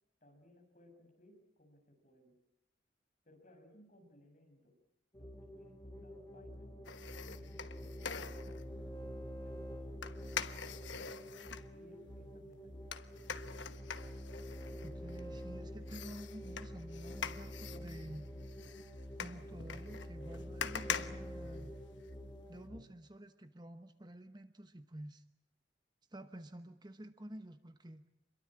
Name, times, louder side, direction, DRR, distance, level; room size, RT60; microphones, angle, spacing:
voice 1, 0.2-2.4 3.2-4.8 5.1-6.9 7.2-8.8 9.3-13.3, left 1 dB, 40° left, 3 dB, 6.4 m, -64 dB
sound 1, 5.1-22.8, equal, 15° left, 3.3 m, -47 dB
sound 2, 6.8-8.7 10.0-11.7 12.9-15.4 15.9-22.1 22.5-22.6, left 7 dB, 75° left, 1.2 m, -44 dB
voice 2, 14.8-18.2 19.2-21.7 22.5-25.2 26.1-28.0, right 1 dB, 25° right, 9 dB, 1.0 m, -50 dB
26.5 x 22.5 x 8.7 m, 0.79 s
head